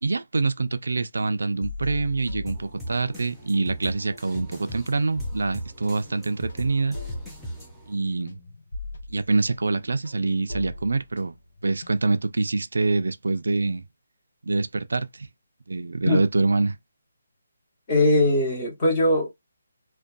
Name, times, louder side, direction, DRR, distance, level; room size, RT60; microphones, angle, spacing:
voice 1, 0.0-7.0 7.9-8.4 9.1-11.3 11.6-13.8 14.4-15.3 15.7-16.8, right 3 dB, 85° right, 0.4 m, -25 dB
sound 1, 1.6-3.3 3.6-12.3, left 2 dB, 55° left, 0.7 m, -40 dB
sound 2, 2.5-7.9, right 1 dB, ahead, 0.4 m, -38 dB
voice 2, 17.9-19.3, left 1 dB, 20° left, 0.9 m, -20 dB
2.6 x 2.2 x 2.2 m
hypercardioid pair, 175°, 0 cm